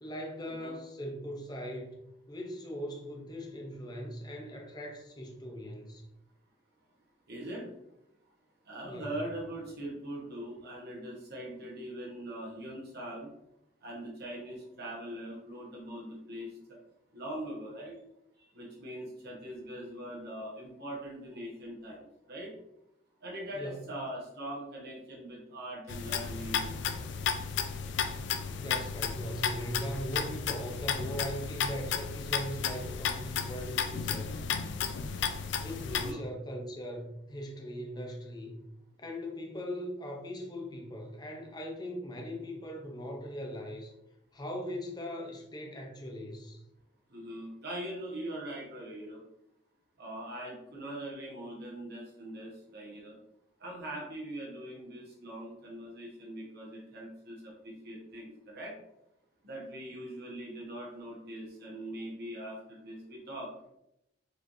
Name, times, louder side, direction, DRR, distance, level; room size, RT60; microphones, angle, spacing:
voice 1, 0.0-2.0 2.3-6.1 8.8-9.2 23.5-23.9 28.6-34.4 35.6-38.6 39.0-43.9 44.3-46.6, equal, 20° left, 0 dB, 0.6 m, -40 dB
voice 2, 7.3-7.7 8.6-13.3 13.8-16.8 17.1-18.0 18.4-22.5 23.2-26.7 35.9-36.2 47.1-49.2 50.0-53.2 53.6-58.7 59.4-63.5, right 1 dB, 55° right, -3 dB, 1.1 m, -42 dB
sound 1, 25.9-36.1, left 7 dB, 65° left, 0.4 m, -33 dB
4.3 x 3.1 x 2.6 m, 0.83 s
head